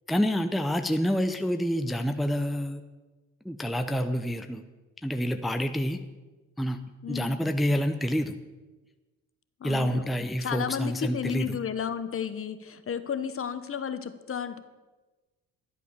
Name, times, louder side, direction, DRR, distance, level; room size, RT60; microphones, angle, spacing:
voice 1, 0.1-2.8 3.4-4.6 5.0-6.0 6.6-6.8 7.1-8.4 9.6-11.6, equal, ahead, 7 dB, 0.7 m, -28 dB
voice 2, 7.0-7.4 9.6-10.1 10.4-14.6, left 7 dB, 40° left, 11 dB, 1.1 m, -33 dB
12.0 x 8.3 x 6.7 m, 1.2 s
supercardioid pair, 80°, 34 cm